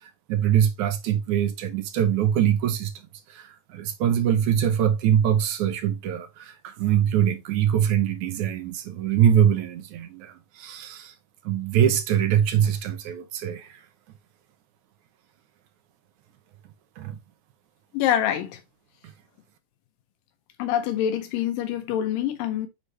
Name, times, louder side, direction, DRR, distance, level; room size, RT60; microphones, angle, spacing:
voice 1, 0.0-2.9 3.3-11.1 11.5-13.8 17.0-17.2 19.0-19.1, right 9 dB, 75° right, 2.0 m, -23 dB
voice 2, 17.9-18.6 20.6-22.7, left 10 dB, 85° left, 2.3 m, -25 dB
8.2 x 3.8 x 3.2 m
omnidirectional pair, 3.9 m